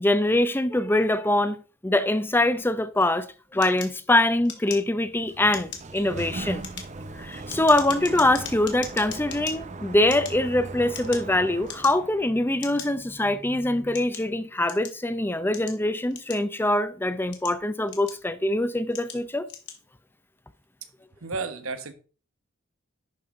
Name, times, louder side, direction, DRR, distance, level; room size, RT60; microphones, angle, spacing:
voice 1, 0.0-1.6 1.8-6.6 7.2-19.5, left 1 dB, 10° left, 0.6 m, -23 dB
sound 1, 3.6-5.2 5.5-5.9 6.5-9.5 10.0-11.3 11.6-12.2 12.6-12.9 13.5-15.0 15.5-16.7 17.2-18.4 18.9-19.2 19.5-19.8, left 8 dB, 55° left, 1.9 m, -39 dB
Sliding door, 5.1-12.5, right 2 dB, 35° right, 0.6 m, -39 dB
voice 2, 21.2-21.9, right 4 dB, 90° right, 1.2 m, -32 dB
11.0 x 5.4 x 3.7 m
head